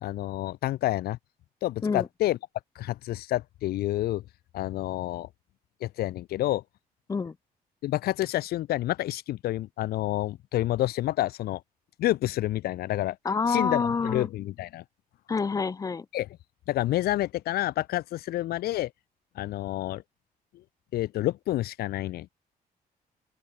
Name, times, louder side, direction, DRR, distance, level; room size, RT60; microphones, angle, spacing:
voice 1, 0.0-1.2 1.6-2.4 2.8-4.2 4.5-5.3 5.8-6.6 7.8-11.6 12.0-13.2 13.5-14.8 16.1-16.3 16.7-18.9 19.4-20.0 20.9-22.3, left 15 dB, 90° left, 0.9 m, -29 dB
voice 2, 13.2-14.3 15.3-16.1, left 5 dB, 20° left, 2.1 m, -27 dB
open air
cardioid pair, 175°, 16 cm